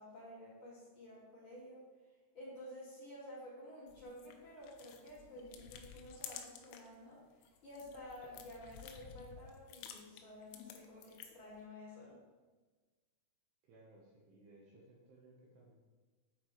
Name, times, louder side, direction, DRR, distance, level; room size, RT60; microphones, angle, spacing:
voice 1, 0.0-1.8 2.3-12.2, left 1 dB, 35° left, -9 dB, 2.0 m, -52 dB
sound 1, 3.9-7.0 7.3-11.5, left 8 dB, 85° left, 2.9 m, -53 dB
voice 2, 13.6-15.7, right 2 dB, 75° right, -3 dB, 2.7 m, -61 dB
8.1 x 4.3 x 4.5 m, 1.3 s
omnidirectional pair, 5.8 m